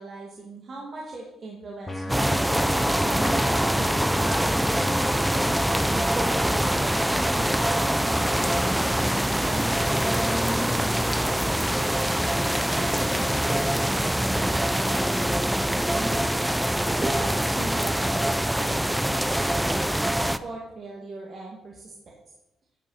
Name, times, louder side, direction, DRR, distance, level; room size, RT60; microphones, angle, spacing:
voice 1, 0.0-2.7 3.1-9.0 9.4-12.1 12.7-16.3 17.0-22.2, right 2 dB, 45° right, -2 dB, 1.9 m, -39 dB
sound 1, 1.9-5.9, left 1 dB, 15° left, 0.8 m, -34 dB
sound 2, 2.1-20.4, right 1 dB, 5° right, 0.4 m, -24 dB
10.5 x 6.0 x 5.5 m, 0.94 s
cardioid pair, 90°, 0 cm